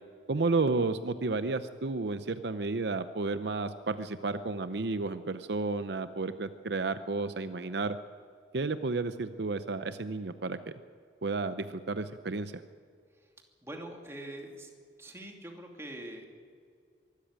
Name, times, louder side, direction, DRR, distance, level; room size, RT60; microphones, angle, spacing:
voice 1, 0.3-8.0 8.5-10.7 11.2-12.6, right 3 dB, 70° right, 11 dB, 0.7 m, -32 dB
voice 2, 13.6-14.7 15.0-16.3, right 1 dB, 15° right, 1 dB, 2.7 m, -44 dB
24.0 x 13.5 x 8.9 m, 2.1 s
head